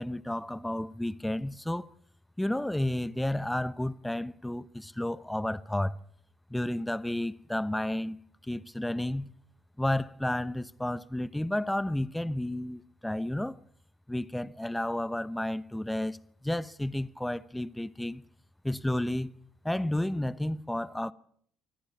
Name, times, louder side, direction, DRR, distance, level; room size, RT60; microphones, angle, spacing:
voice 1, 0.0-1.9 2.4-6.0 6.5-8.2 8.4-9.3 9.8-13.6 14.1-18.2 18.6-19.3 19.6-21.1, left 1 dB, 5° left, 0.9 m, -31 dB
24.5 x 15.5 x 7.1 m
cardioid pair, 100°, 0 cm